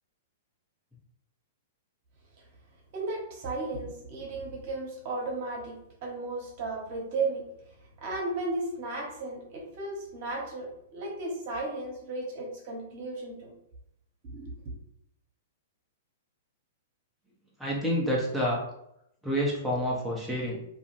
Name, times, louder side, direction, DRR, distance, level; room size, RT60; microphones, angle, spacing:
voice 1, 2.9-5.7 6.0-7.4 8.0-13.5 14.2-14.5, right 2 dB, 50° right, -2 dB, 1.0 m, -34 dB
voice 2, 17.6-18.6 19.2-20.6, equal, ahead, -6 dB, 0.7 m, -28 dB
2.6 x 2.3 x 3.1 m, 0.77 s
hypercardioid pair, 110°, 0 cm